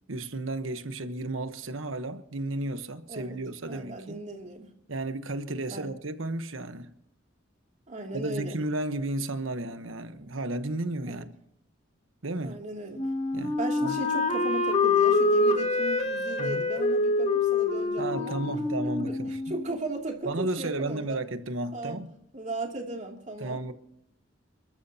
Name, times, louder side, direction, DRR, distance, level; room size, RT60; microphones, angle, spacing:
voice 1, 0.1-4.2 4.9-6.9 8.1-11.3 12.2-12.6 13.3-13.6 13.8-14.0 16.4-16.6 18.0-19.4 20.2-22.1 23.4-23.7, right 2 dB, 85° right, 1.1 m, -33 dB
voice 2, 3.7-4.7 5.7-5.9 7.9-8.6 11.1-11.3 12.4-13.0 13.6-18.6 19.5-21.2 21.7-22.1 22.3-23.6, right 2 dB, 35° right, 2.7 m, -36 dB
Wind instrument woodwind instrument, 13.0-19.8, left 3 dB, 35° left, 1.9 m, -26 dB
29.5 x 13.5 x 2.8 m
head